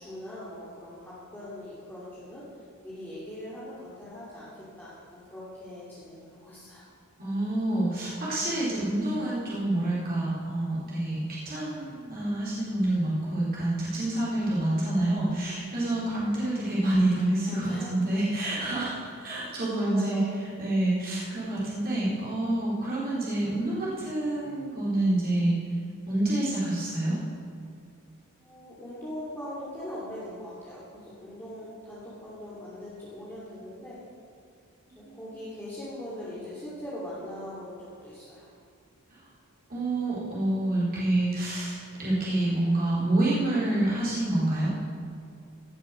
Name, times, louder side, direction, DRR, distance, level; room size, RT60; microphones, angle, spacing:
voice 1, 0.0-2.4 2.8-6.9 17.5-17.9 19.4-20.3 28.4-34.0 35.1-38.5, left 1 dB, 10° left, -10 dB, 2.8 m, -41 dB
voice 2, 7.2-20.2 20.6-25.5 26.1-27.2 35.0-35.2 39.7-44.7, right 1 dB, 45° right, -8 dB, 4.1 m, -27 dB
17.0 x 7.7 x 6.5 m, 2.3 s
head